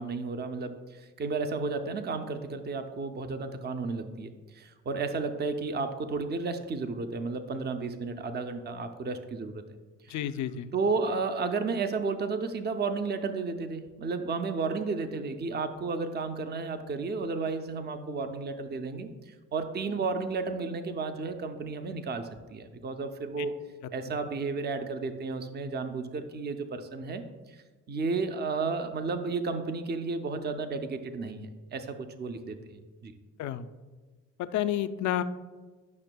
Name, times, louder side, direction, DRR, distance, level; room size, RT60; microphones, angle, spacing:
voice 1, 0.0-9.6 10.0-10.2 10.7-23.6 23.9-27.2 27.5-33.1, right 4 dB, 35° right, 8 dB, 0.6 m, -33 dB
voice 2, 10.1-10.7 23.4-23.5 33.4-33.7 34.4-35.2, left 11 dB, 70° left, 12 dB, 0.5 m, -30 dB
10.5 x 5.8 x 2.2 m, 1.3 s
cardioid pair, 90°, 30 cm